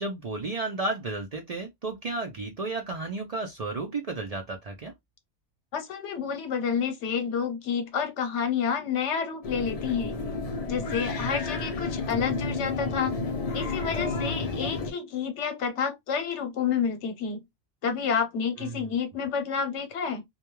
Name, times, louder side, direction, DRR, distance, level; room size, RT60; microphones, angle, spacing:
voice 1, 0.0-4.9 13.9-14.5 18.6-18.9, right 2 dB, 60° right, 0.4 m, -33 dB
voice 2, 5.7-10.1 10.7-13.1 13.5-17.4 17.8-20.2, left 6 dB, 75° left, 1.0 m, -29 dB
sound 1, 9.4-14.9, left 3 dB, 45° left, 0.5 m, -31 dB
2.2 x 2.2 x 2.9 m
omnidirectional pair, 1.2 m